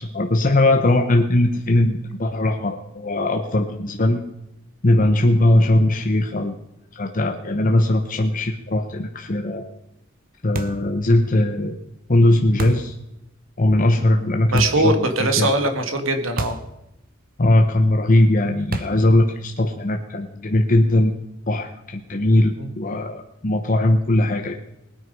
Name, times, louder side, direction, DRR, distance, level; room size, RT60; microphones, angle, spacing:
voice 1, 0.0-4.2 4.8-6.5 6.9-9.6 10.4-11.8 12.1-13.0 13.6-15.5 17.4-24.5, left 1 dB, 40° left, 4 dB, 1.0 m, -19 dB
sound 1, 10.5-10.9 12.6-12.9 14.6-14.9 16.4-16.7 17.0-17.1 18.7-19.1, right 2 dB, 45° right, 1.0 m, -29 dB
voice 2, 14.5-16.6 22.6-22.7, right 2 dB, 85° right, 7 dB, 1.7 m, -21 dB
20.0 x 9.3 x 5.4 m, 0.90 s
head